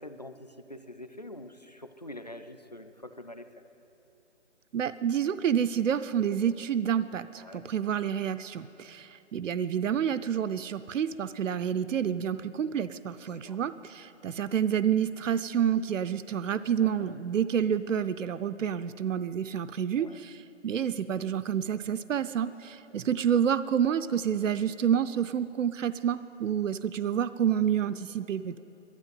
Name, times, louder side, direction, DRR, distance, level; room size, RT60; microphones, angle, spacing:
voice 1, 0.0-3.5 7.3-7.7 13.2-13.6 16.8-17.1 20.0-20.2, left 1 dB, 35° left, 9 dB, 0.4 m, -45 dB
voice 2, 4.7-28.6, right 8 dB, 85° right, 12 dB, 0.6 m, -29 dB
12.0 x 10.5 x 9.3 m, 3.0 s
hypercardioid pair, 170°, 37 cm